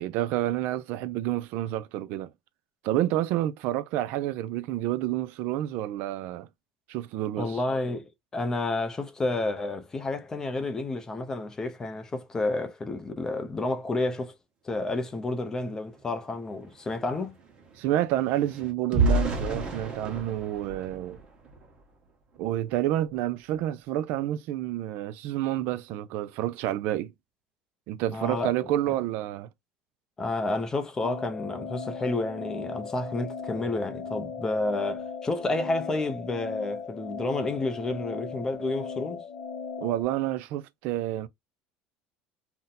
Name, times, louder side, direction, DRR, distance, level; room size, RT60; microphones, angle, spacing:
voice 1, 0.0-2.3 2.8-6.5 6.9-7.6 17.8-21.2 22.4-27.1 27.9-29.5 39.8-41.3, right 13 dB, 65° right, 0.3 m, -29 dB
voice 2, 7.4-14.3 14.6-17.4 28.1-28.5 30.2-39.2, left 2 dB, 15° left, 0.5 m, -30 dB
sound 1, 16.0-16.1 16.3-21.8 22.3-22.5 22.9-23.1, right 2 dB, 30° right, 1.1 m, -31 dB
sound 2, 31.0-40.0, left 5 dB, 75° left, 0.6 m, -38 dB
2.6 x 2.1 x 3.9 m
cardioid pair, 145°, 3 cm